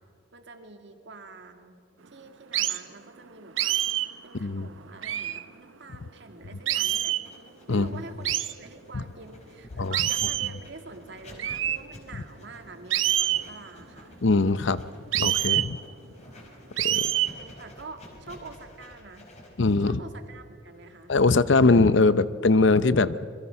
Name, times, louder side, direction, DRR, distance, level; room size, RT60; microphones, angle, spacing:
voice 1, 0.3-1.8 2.1-3.9 4.2-7.2 7.7-14.1 17.1-19.3 19.8-21.1, right 3 dB, 60° right, 6 dB, 2.1 m, -46 dB
sound 1, 2.5-2.8 3.6-4.1 5.0-5.4 6.7-7.3 8.3-8.5 9.9-10.6 11.4-11.8 12.9-13.5 15.1-15.7 16.8-17.3, right 12 dB, 85° right, 0.8 m, -26 dB
Writing, 7.2-22.0, left 1 dB, 35° left, 4.7 m, -50 dB
voice 2, 14.2-14.8 15.1-15.8 16.8-17.1 19.6-20.0 21.1-23.3, left 3 dB, 70° left, 15 dB, 0.7 m, -21 dB
28.0 x 22.5 x 5.8 m, 2.3 s
head